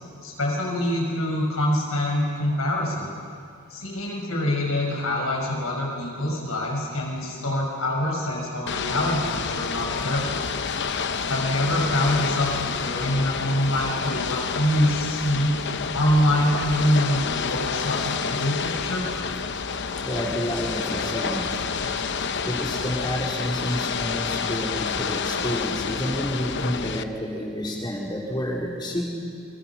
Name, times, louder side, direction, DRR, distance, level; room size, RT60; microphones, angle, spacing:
voice 1, 0.2-3.1 3.7-10.4 11.3-15.6 15.9-19.1, left 1 dB, 70° left, -1 dB, 5.9 m, -25 dB
Ocean / Boat Water vehicle, 8.7-27.0, left 5 dB, 50° left, 0.8 m, -29 dB
voice 2, 20.0-21.6 22.4-29.0, equal, 20° left, -2 dB, 4.2 m, -29 dB
27.5 x 22.5 x 6.0 m, 2.4 s
head